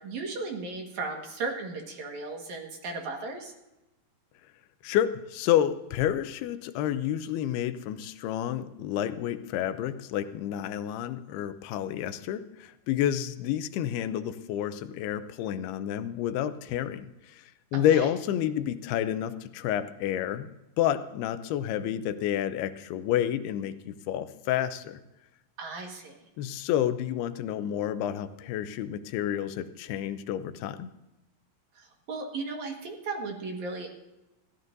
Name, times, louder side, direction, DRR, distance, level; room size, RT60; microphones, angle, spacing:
voice 1, 0.0-3.5 17.7-18.1 25.6-26.2 31.8-34.0, right 3 dB, 55° right, 2 dB, 2.6 m, -36 dB
voice 2, 4.8-20.5 20.8-25.0 26.4-30.9, left 11 dB, 90° left, 11 dB, 2.7 m, -29 dB
21.5 x 15.5 x 2.7 m, 0.97 s
omnidirectional pair, 4.4 m